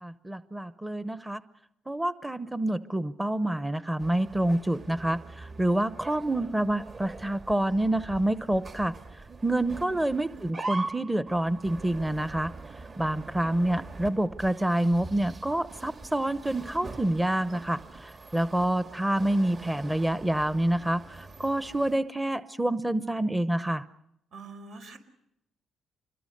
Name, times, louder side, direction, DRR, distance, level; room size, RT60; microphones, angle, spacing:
voice 1, 0.0-1.4 1.9-8.9 9.4-12.5 13.0-23.8, right 1 dB, 10° right, 13 dB, 0.9 m, -27 dB
sound 1, 4.0-22.0, right 3 dB, 40° right, 1.9 m, -43 dB
voice 2, 24.3-25.0, right 3 dB, 75° right, 5 dB, 5.0 m, -45 dB
26.5 x 22.0 x 6.7 m, 0.80 s
cardioid pair, 90°, 0 cm